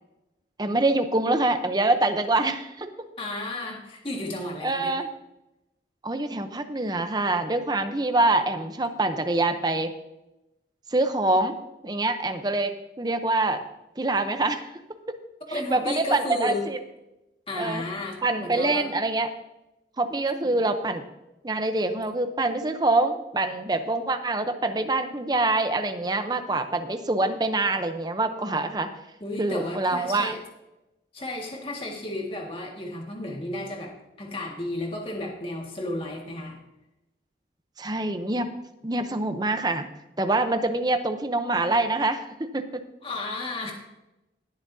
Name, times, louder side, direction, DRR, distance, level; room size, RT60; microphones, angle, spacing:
voice 1, 0.6-3.1 4.6-5.1 6.0-9.9 10.9-11.6 11.8-13.6 14.0-14.7 15.5-16.8 17.5-17.8 18.2-19.3 20.0-21.0 21.4-28.9 29.4-30.3 37.8-38.5 38.8-39.9 40.2-42.8, right 2 dB, 20° right, 8 dB, 0.7 m, -25 dB
voice 2, 3.2-4.9 15.5-16.7 17.5-18.9 20.4-20.6 29.2-30.4 31.1-36.6 43.0-43.7, left 1 dB, 30° left, 0 dB, 1.8 m, -33 dB
19.0 x 7.2 x 2.7 m, 0.95 s
head